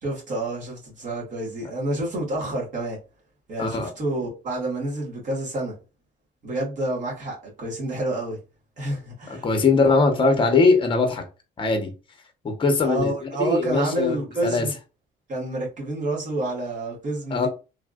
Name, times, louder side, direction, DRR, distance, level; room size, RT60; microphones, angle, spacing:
voice 1, 0.0-3.0 3.5-5.7 6.4-8.4 8.8-9.5 9.7-9.8 12.8-14.7 15.3-17.5, right 1 dB, 50° right, 1.7 m, -28 dB
voice 2, 3.6-3.9 9.4-11.2 11.6-11.9 12.4-14.7 17.3-17.5, left 3 dB, 30° left, 0.9 m, -21 dB
3.4 x 2.5 x 2.4 m
cardioid pair, 110°, 17 cm